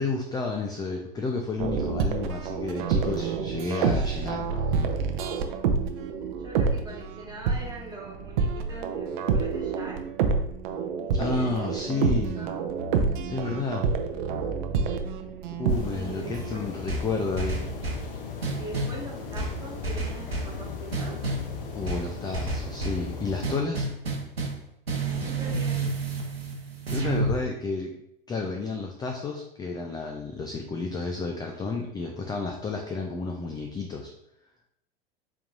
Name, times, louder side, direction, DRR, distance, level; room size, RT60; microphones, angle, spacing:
voice 1, 0.0-4.8 11.2-12.4 13.3-13.9 15.6-17.6 21.7-23.9 26.9-27.9 28.3-34.1, left 3 dB, 15° left, 2 dB, 0.4 m, -31 dB
sound 1, 1.6-16.5, right 5 dB, 55° right, 0.6 m, -28 dB
voice 2, 6.4-10.0 11.0-12.6 13.0-13.3 14.8-15.0 15.9-16.7 18.5-21.2 25.2-25.8, right 1 dB, 15° right, -3 dB, 1.6 m, -42 dB
sound 2, 15.7-23.6, left 5 dB, 65° left, 0.9 m, -37 dB
sound 3, 16.9-18.1 18.4-19.0 19.4-20.6 20.9-21.5 21.9-23.1 23.4-24.6 24.9-27.4, right 3 dB, 90° right, 1.0 m, -30 dB
4.4 x 3.8 x 2.6 m, 0.80 s
figure-of-eight pair, 90°, 29 cm